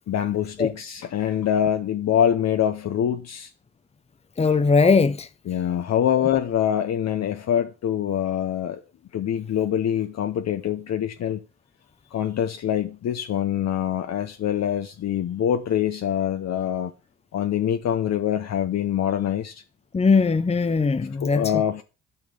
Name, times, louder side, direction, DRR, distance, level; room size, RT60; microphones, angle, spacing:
voice 1, 0.1-3.5 5.5-8.8 9.1-11.4 12.1-16.9 17.3-19.6 21.2-21.8, left 10 dB, 60° left, 1.0 m, -24 dB
voice 2, 4.4-5.3 19.9-21.6, left 4 dB, 20° left, 0.9 m, -20 dB
12.5 x 6.1 x 7.0 m
cardioid pair, 90°, 30 cm